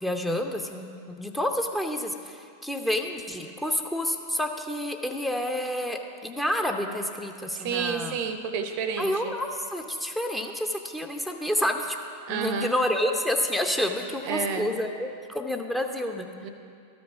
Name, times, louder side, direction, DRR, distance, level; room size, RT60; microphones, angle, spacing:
voice 1, 0.0-8.2 9.0-12.0 12.3-16.3, left 1 dB, 5° left, 4 dB, 0.7 m, -29 dB
voice 2, 7.5-9.3 12.3-12.7 14.2-14.7 16.4-16.5, right 6 dB, 45° right, 8 dB, 0.6 m, -30 dB
13.0 x 5.3 x 5.7 m, 2.4 s
figure-of-eight pair, 90°, 0 cm